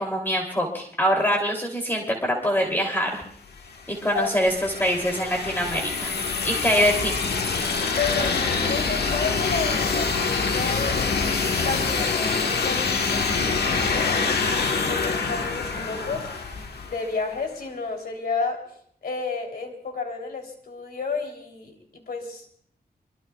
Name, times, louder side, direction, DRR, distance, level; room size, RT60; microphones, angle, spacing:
voice 1, 0.0-3.2 3.9-6.1 6.4-7.2, equal, 15° left, 0 dB, 2.9 m, -24 dB
sound 1, 3.5-17.3, left 4 dB, 85° left, 1.3 m, -25 dB
voice 2, 8.0-11.0 11.6-13.3 13.6-18.8 19.0-22.5, left 4 dB, 70° left, 2 dB, 3.3 m, -31 dB
24.5 x 23.0 x 2.3 m, 0.63 s
wide cardioid pair, 95°, 16 cm